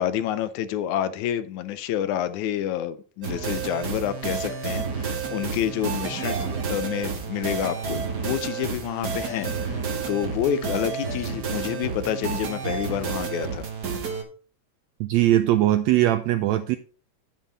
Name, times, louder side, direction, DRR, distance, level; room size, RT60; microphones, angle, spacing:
voice 1, 0.0-9.8 10.1-13.7, left 10 dB, 80° left, 1.9 m, -28 dB
sound 1, 3.2-14.2, right 5 dB, 45° right, 1.4 m, -30 dB
voice 2, 15.0-16.8, right 14 dB, 80° right, 1.5 m, -20 dB
9.2 x 7.3 x 3.9 m
omnidirectional pair, 3.6 m